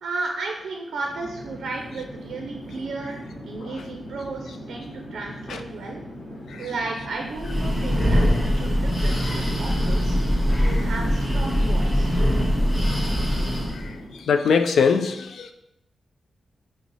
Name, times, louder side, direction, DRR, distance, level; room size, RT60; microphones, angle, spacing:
voice 1, 0.0-6.0 6.6-10.2 10.6-12.2, right 3 dB, 80° right, 2 dB, 0.4 m, -34 dB
Chatter / Fixed-wing aircraft airplane, 0.9-14.3, equal, 50° left, 1.2 m, -39 dB
Breathing, 7.2-13.9, equal, 20° left, 0.8 m, -22 dB
voice 2, 14.3-15.5, left 5 dB, 75° left, 8 dB, 0.3 m, -21 dB
4.6 x 2.0 x 3.9 m, 0.82 s
wide cardioid pair, 180°, 0 cm